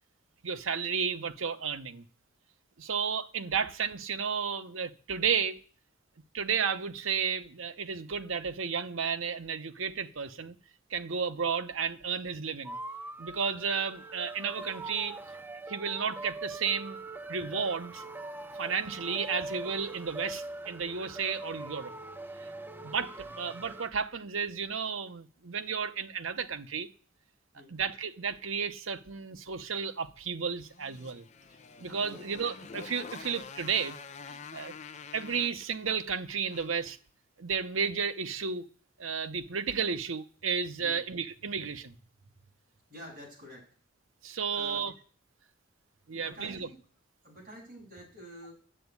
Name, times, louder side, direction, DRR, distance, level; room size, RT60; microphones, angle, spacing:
voice 1, 0.4-2.0 2.8-5.6 6.3-10.5 10.9-12.8 13.2-15.2 15.7-17.0 17.3-18.0 18.6-21.9 22.4-22.5 22.8-26.9 27.7-31.3 31.8-34.0 34.3-34.7 35.1-37.0 37.4-38.7 39.0-42.0 44.2-44.9 46.1-46.7, right 6 dB, 80° right, 0.8 m, -33 dB
sound 1, 12.7-23.9, right 2 dB, 10° right, 0.5 m, -42 dB
Motorcycle, 30.6-36.9, left 5 dB, 35° left, 0.6 m, -47 dB
voice 2, 42.9-43.6 44.5-44.8 46.1-46.8 47.2-48.5, equal, 40° right, 7.5 m, -48 dB
10.0 x 8.0 x 9.6 m
head